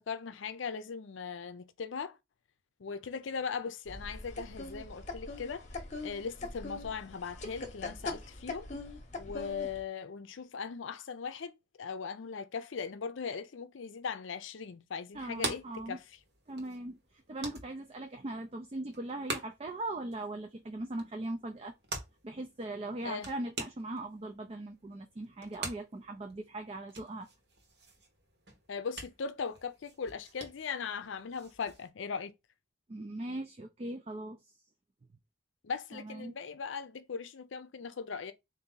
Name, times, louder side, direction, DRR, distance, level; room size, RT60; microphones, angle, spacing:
voice 1, 0.0-2.2 2.8-5.7 6.0-8.7 9.2-11.5 11.8-16.0 23.0-23.3 28.7-32.3 35.6-38.3, left 5 dB, 80° left, 0.5 m, -39 dB
sound 1, 3.9-9.8, left 3 dB, 35° left, 0.9 m, -42 dB
voice 2, 15.1-16.0 16.5-21.7 22.2-27.3 32.9-34.4 35.9-36.4, right 2 dB, 30° right, 0.4 m, -40 dB
sound 2, 15.1-31.9, right 3 dB, 55° right, 1.1 m, -46 dB
4.0 x 2.6 x 3.8 m
head